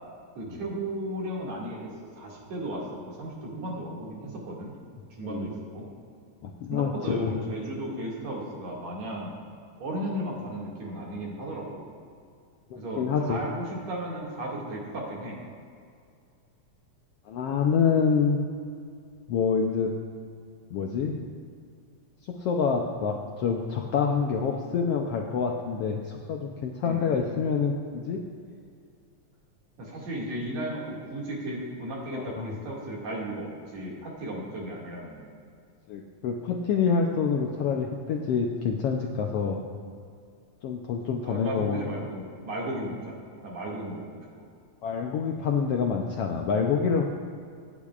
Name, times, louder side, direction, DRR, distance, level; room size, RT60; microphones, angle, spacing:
voice 1, 0.4-4.7 5.1-5.8 6.7-9.3 9.8-11.9 12.7-15.4 26.8-27.1 29.8-35.3 41.2-44.4, right 1 dB, 65° right, -3 dB, 3.4 m, -35 dB
voice 2, 6.4-7.3 12.7-13.4 17.3-18.4 19.3-19.9 20.7-21.2 22.2-28.2 32.1-32.5 35.9-39.6 40.6-41.8 44.8-47.0, left 6 dB, 75° left, 1 dB, 1.4 m, -27 dB
24.0 x 10.5 x 2.4 m, 2.3 s
omnidirectional pair, 3.4 m